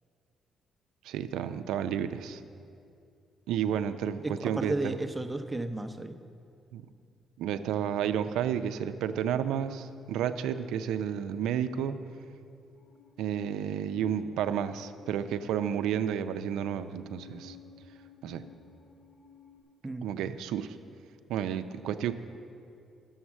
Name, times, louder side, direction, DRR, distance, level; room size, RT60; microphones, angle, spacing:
voice 1, 1.0-2.4 3.5-5.0 6.7-6.8 7.4-12.0 13.2-17.6 18.2-18.4 20.0-20.7 21.3-22.1, right 9 dB, 90° right, 10 dB, 0.5 m, -31 dB
voice 2, 4.2-6.2 19.8-20.1, right 2 dB, 15° right, 8 dB, 0.7 m, -33 dB
Musical instrument, 12.7-19.6, left 6 dB, 55° left, 1.8 m, -53 dB
11.0 x 7.1 x 7.3 m, 2.5 s
cardioid pair, 90°, 0 cm